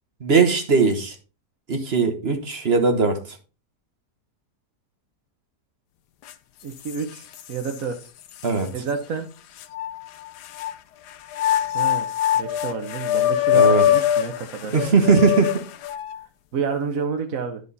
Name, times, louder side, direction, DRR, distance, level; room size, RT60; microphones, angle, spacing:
voice 1, 0.2-1.1 1.7-3.4 8.4-8.7 13.5-13.8 14.7-15.7, right 4 dB, 40° right, 1.4 m, -19 dB
sound 1, 6.3-6.4 6.8-7.8 8.4-8.5 9.6-10.7 11.3-16.2, left 10 dB, 85° left, 1.3 m, -22 dB
voice 2, 6.6-8.0 8.7-9.3 11.7-12.1 12.3-14.7 16.5-17.6, right 5 dB, 60° right, 1.3 m, -29 dB
11.0 x 5.0 x 4.0 m
omnidirectional pair, 1.7 m